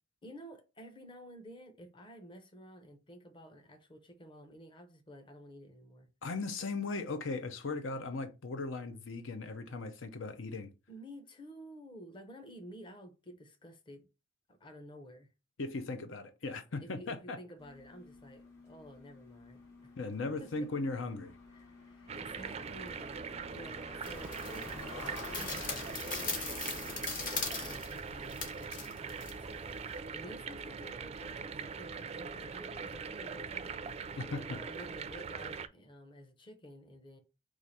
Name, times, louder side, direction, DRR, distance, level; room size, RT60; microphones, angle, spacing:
voice 1, 0.2-6.1 10.9-14.1 14.5-15.3 16.8-19.9 20.2-20.7 21.5-29.3 30.1-33.9 34.2-37.2, equal, 25° left, 0.8 m, -52 dB
voice 2, 6.2-10.7 15.6-17.4 20.0-21.3 34.2-34.6, left 3 dB, 80° left, 0.6 m, -38 dB
sound 1, 17.6-27.8, left 3 dB, 65° left, 2.6 m, -51 dB
sound 2, 22.1-35.7, right 5 dB, 35° right, 0.4 m, -42 dB
sound 3, 24.0-30.0, left 4 dB, 45° left, 1.2 m, -41 dB
4.8 x 2.5 x 4.1 m
head